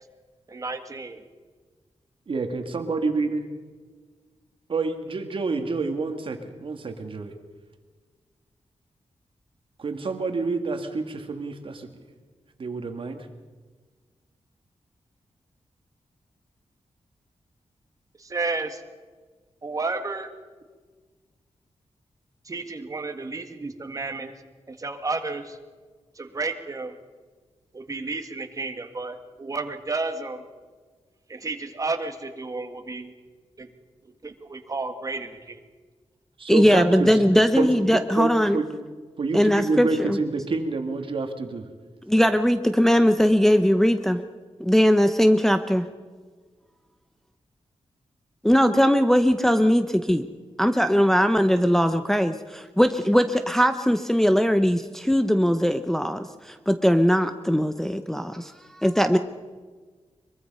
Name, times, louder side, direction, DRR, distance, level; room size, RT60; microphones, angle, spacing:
voice 1, 0.5-1.2 18.2-18.8 19.6-20.3 22.5-24.3 24.7-25.6 26.2-27.0 27.7-30.4 31.3-33.1 33.6-33.7 34.0-35.6, right 3 dB, 30° right, 7 dB, 1.8 m, -32 dB
voice 2, 2.3-3.4 4.7-7.3 9.8-11.9 12.6-13.3 36.4-37.1 37.5-38.7 39.2-41.7, right 3 dB, 50° right, 6 dB, 2.1 m, -28 dB
voice 3, 36.5-38.6 39.3-40.2 42.1-44.2 44.6-45.9 48.4-50.3 50.6-59.2, equal, 5° left, 8 dB, 0.7 m, -20 dB
23.5 x 23.0 x 5.5 m, 1.4 s
wide cardioid pair, 170°, 11 cm